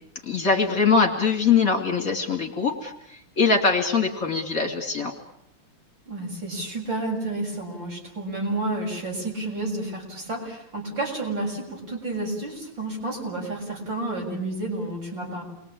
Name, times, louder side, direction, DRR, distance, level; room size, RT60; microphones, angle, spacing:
voice 1, 0.2-5.1, left 5 dB, 40° left, 3 dB, 3.3 m, -22 dB
voice 2, 6.1-15.4, right 2 dB, 55° right, 0 dB, 7.8 m, -30 dB
28.5 x 22.5 x 8.7 m, 0.76 s
omnidirectional pair, 2.4 m